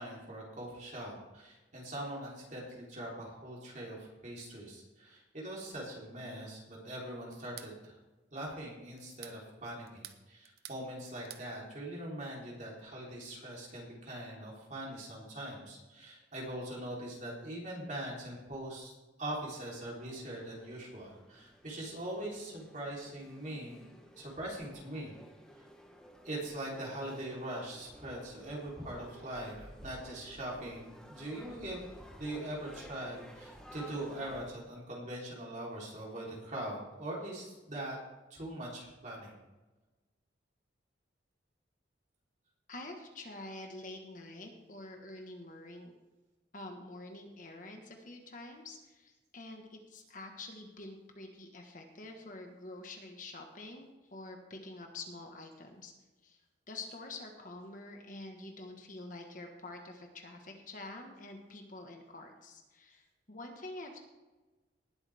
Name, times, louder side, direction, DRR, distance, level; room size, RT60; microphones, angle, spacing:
voice 1, 0.0-8.0 8.3-18.9 19.2-23.9 24.2-25.1 26.2-31.8 32.2-38.0 38.3-39.4, right 1 dB, 40° right, -4 dB, 3.7 m, -42 dB
sound 1, 7.3-7.8 9.0-9.4 9.9-10.8 11.1-11.5, right 11 dB, 55° right, 0.8 m, -49 dB
sound 2, 19.8-34.5, equal, 5° left, 1.2 m, -54 dB
voice 2, 42.7-45.9 46.5-55.9 56.2-56.4 56.7-64.0, left 2 dB, 45° left, 3 dB, 1.5 m, -47 dB
19.0 x 8.3 x 3.6 m, 1.2 s
head